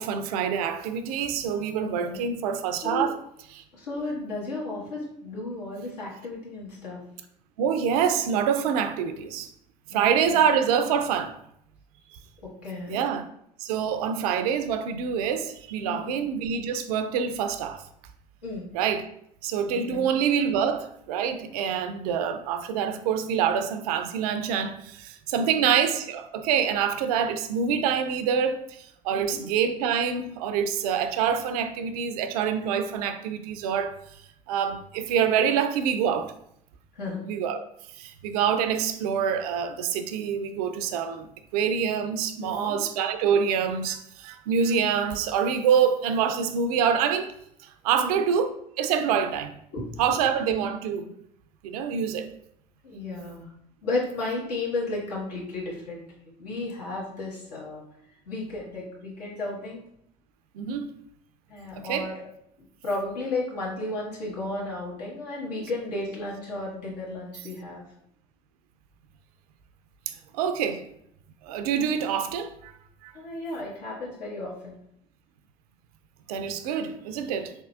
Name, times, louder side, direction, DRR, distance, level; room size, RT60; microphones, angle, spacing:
voice 1, 0.0-3.2 3.5-3.6 7.6-9.5 9.9-11.4 12.9-13.3 13.6-17.8 18.7-19.0 19.4-34.0 34.5-36.3 37.3-37.6 37.9-47.3 47.6-49.5 50.0-51.1 51.6-52.3 60.5-60.9 61.8-62.1 70.1-70.8 71.4-72.7 73.0-73.1 76.3-77.5, right 7 dB, 70° right, 0.4 m, -26 dB
voice 2, 1.8-2.2 2.8-3.1 3.7-7.0 9.9-10.4 12.4-13.0 15.8-16.2 18.4-18.7 19.9-20.1 25.4-25.7 29.1-29.4 36.9-37.2 42.4-42.8 47.9-48.2 49.7-49.9 52.8-53.5 53.8-56.0 56.4-57.8 58.2-59.8 61.5-62.3 62.8-67.8 73.1-74.8, left 2 dB, 80° left, 1.4 m, -33 dB
4.1 x 3.5 x 2.3 m
figure-of-eight pair, 60°, 20 cm